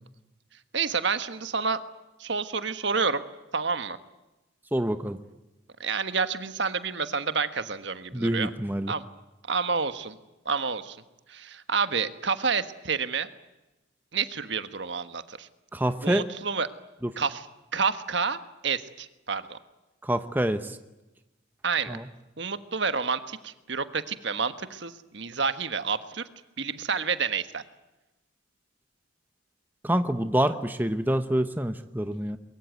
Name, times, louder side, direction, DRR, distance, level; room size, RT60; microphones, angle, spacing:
voice 1, 0.7-1.8 2.2-3.2 3.5-4.0 5.8-8.5 8.9-9.0 9.5-10.2 10.4-11.0 11.3-13.3 14.1-15.5 16.0-16.7 17.2-17.5 17.7-18.4 18.6-19.6 21.6-22.0 22.4-26.2 26.6-27.6, right 5 dB, 65° right, 11 dB, 1.5 m, -29 dB
voice 2, 4.7-5.2 8.1-8.9 15.7-16.3 17.0-17.1 20.0-20.8 21.9-22.0 29.8-32.4, right 1 dB, 10° right, 9 dB, 0.9 m, -26 dB
23.5 x 23.0 x 9.3 m, 1.0 s
head